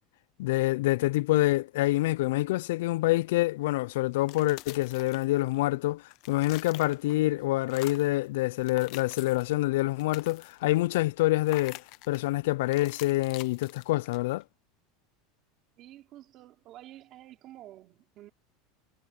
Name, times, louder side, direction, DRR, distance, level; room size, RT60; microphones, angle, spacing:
voice 1, 0.4-11.8 12.1-14.4, left 18 dB, 75° left, 0.3 m, -26 dB
sound 1, 4.1-5.7 6.0-7.3 7.6-8.2 8.6-9.5 9.9-10.7 11.4-12.3 12.7-14.4, left 20 dB, 45° left, 0.8 m, -46 dB
voice 2, 15.8-18.3, right 14 dB, 35° right, 3.0 m, -50 dB
supercardioid pair, 170°, 0 cm